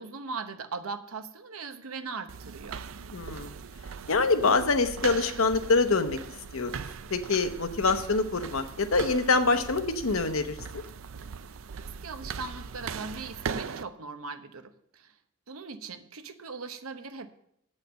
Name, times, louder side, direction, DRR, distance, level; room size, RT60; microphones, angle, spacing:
voice 1, 0.0-2.8 12.0-15.1 15.5-17.3, right 4 dB, 90° right, 8 dB, 0.9 m, -39 dB
sound 1, 2.3-13.8, right 6 dB, 70° right, 0.5 m, -40 dB
voice 2, 3.1-3.5 4.1-6.2 6.5-6.7 7.1-10.5, left 3 dB, 75° left, 8 dB, 0.9 m, -25 dB
8.4 x 6.5 x 7.5 m, 0.71 s
head